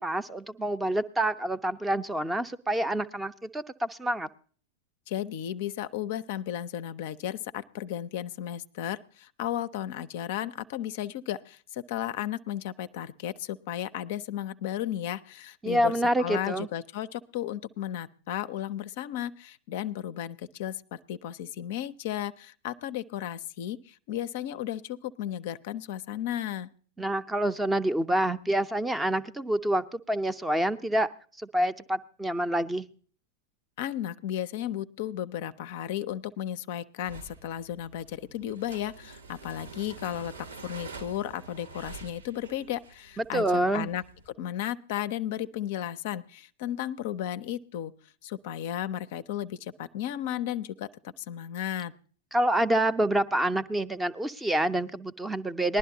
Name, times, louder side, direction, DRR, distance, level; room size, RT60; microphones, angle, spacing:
voice 1, 0.0-4.3 15.6-16.7 27.0-31.1 31.4-32.9 43.2-43.9 52.3-55.8, right 1 dB, 10° right, 13 dB, 0.5 m, -27 dB
voice 2, 5.1-26.7 33.8-47.9 48.2-51.9, left 11 dB, 50° left, 13 dB, 0.4 m, -34 dB
sound 1, 37.0-44.3, right 4 dB, 70° right, 0.9 m, -47 dB
19.5 x 11.5 x 2.7 m, 0.42 s
figure-of-eight pair, 90°, 0 cm